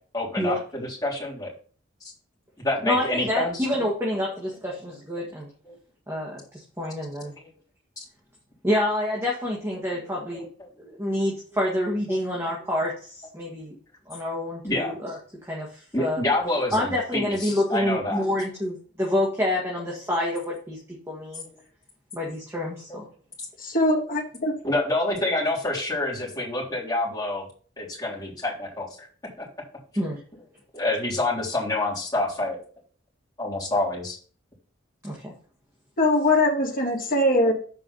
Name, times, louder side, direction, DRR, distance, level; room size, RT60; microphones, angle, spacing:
voice 1, 0.1-1.5 2.6-3.7 5.6-5.7 7.2-7.5 8.0-8.1 9.2-9.3 9.9-10.5 10.8-10.9 11.7-11.8 12.1-12.7 14.6-15.0 15.9-18.2 19.5-19.6 22.5-22.6 22.9-23.0 24.6-27.4 27.8-29.1 29.4-29.5 30.7-32.6 33.4-34.2, left 2 dB, 20° left, -6 dB, 3.5 m, -28 dB
voice 2, 2.8-5.5 6.1-7.3 8.6-10.4 10.9-13.7 14.1-15.1 15.5-16.2 16.7-20.8 21.1-21.4 22.1-23.0 30.0-30.2 35.0-35.3, left 1 dB, 15° right, -3 dB, 1.7 m, -27 dB
voice 3, 23.6-24.5 36.0-37.5, left 1 dB, 45° left, -1 dB, 2.5 m, -22 dB
7.8 x 4.9 x 5.5 m, 0.43 s
head